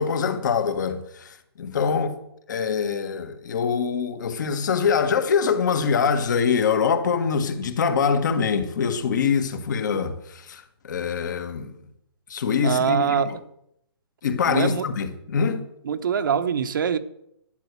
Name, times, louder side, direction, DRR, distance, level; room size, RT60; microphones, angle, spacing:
voice 1, 0.0-2.2 2.5-11.7 12.3-13.4 14.2-15.6, left 6 dB, 45° left, 1.6 m, -24 dB
voice 2, 12.6-13.3 14.4-14.8 15.8-17.0, right 7 dB, 50° right, 1.0 m, -23 dB
12.0 x 9.4 x 8.2 m
hypercardioid pair, 170°, 14 cm